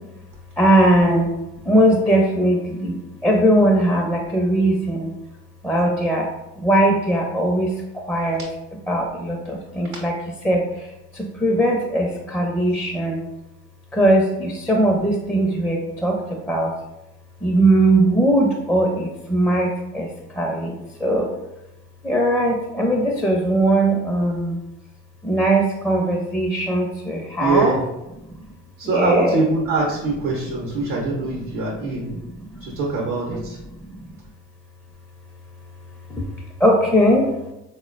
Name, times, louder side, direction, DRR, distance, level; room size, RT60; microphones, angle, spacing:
voice 1, 0.6-1.3 1.7-5.1 5.6-6.3 6.6-8.4 8.9-10.1 10.4-10.7 11.1-13.2 13.9-16.7 17.4-20.1 20.3-21.3 22.0-24.6 25.2-27.8 28.9-29.4 32.5-32.6 33.9-34.0 36.1-36.2 36.6-37.3, right 1 dB, 5° left, -1 dB, 0.4 m, -19 dB
voice 2, 27.4-27.8 28.8-32.2 32.6-33.6, right 3 dB, 80° right, -2 dB, 0.8 m, -23 dB
3.6 x 2.1 x 2.4 m, 0.93 s
supercardioid pair, 60°, 35 cm